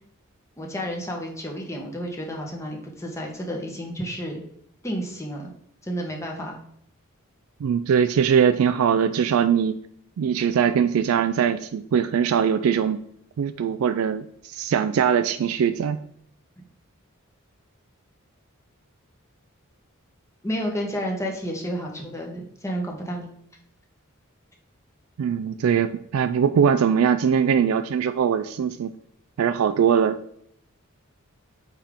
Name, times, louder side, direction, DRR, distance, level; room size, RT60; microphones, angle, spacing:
voice 1, 0.6-4.4 4.8-5.5 5.8-6.6 20.4-23.3, equal, 15° left, 0 dB, 1.1 m, -31 dB
voice 2, 7.6-9.7 10.2-13.0 13.4-16.0 25.2-28.9 29.4-30.2, right 7 dB, 80° right, 10 dB, 0.3 m, -21 dB
8.7 x 3.6 x 3.6 m, 0.68 s
head